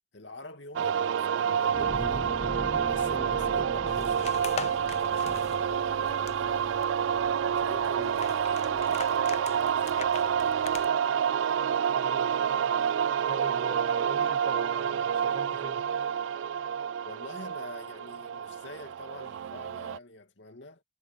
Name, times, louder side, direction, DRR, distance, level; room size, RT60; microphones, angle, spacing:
voice 1, 0.1-2.4 2.9-6.8 7.6-10.6 17.0-20.8, left 2 dB, 70° left, 2.3 m, -46 dB
sound 1, 0.8-20.0, right 8 dB, 85° right, 0.3 m, -28 dB
sound 2, 1.7-6.2 6.7-6.8, left 1 dB, 20° left, 0.8 m, -40 dB
sound 3, 3.9-10.9, left 5 dB, 35° left, 0.5 m, -42 dB
voice 2, 11.9-12.3 13.3-15.8, right 1 dB, 25° right, 1.7 m, -44 dB
head